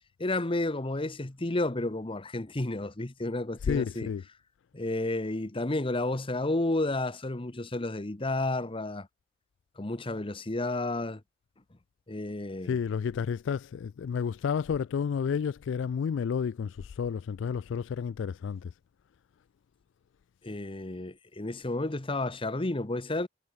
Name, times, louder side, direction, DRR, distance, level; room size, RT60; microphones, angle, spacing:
voice 1, 0.2-4.1 4.7-9.1 9.8-11.2 12.1-12.8 20.4-23.3, left 2 dB, 30° left, 1.1 m, -31 dB
voice 2, 3.6-4.2 12.7-18.7, left 7 dB, 75° left, 0.3 m, -31 dB
head